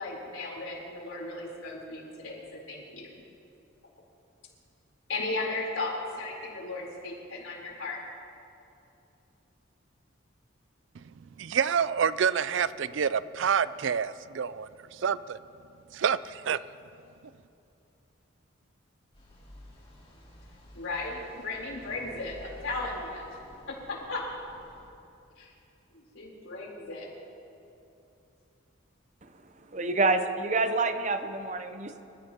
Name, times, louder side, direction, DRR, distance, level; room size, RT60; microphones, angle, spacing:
voice 1, 0.0-3.2 5.1-8.0 20.7-23.3 23.7-24.2 25.4-25.5 25.9-27.1, left 2 dB, 80° left, -3 dB, 4.0 m, -36 dB
voice 2, 11.0-15.4 15.9-16.6, right 7 dB, 65° right, 16 dB, 0.4 m, -28 dB
sound 1, 19.1-24.9, left 1 dB, 30° left, 4.3 m, -51 dB
voice 3, 29.7-32.0, right 3 dB, 35° right, 8 dB, 0.7 m, -27 dB
26.5 x 16.0 x 3.0 m, 2.8 s
head